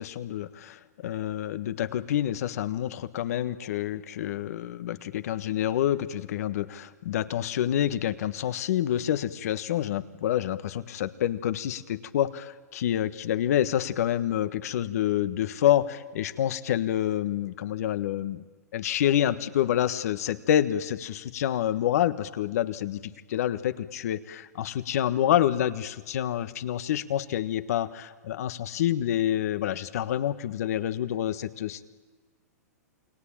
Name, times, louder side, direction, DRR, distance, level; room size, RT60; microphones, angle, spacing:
voice 1, 0.0-18.4 18.7-31.8, left 11 dB, 65° left, 11 dB, 1.4 m, -28 dB
29.0 x 22.0 x 8.8 m, 1.3 s
hypercardioid pair, 120°, 9 cm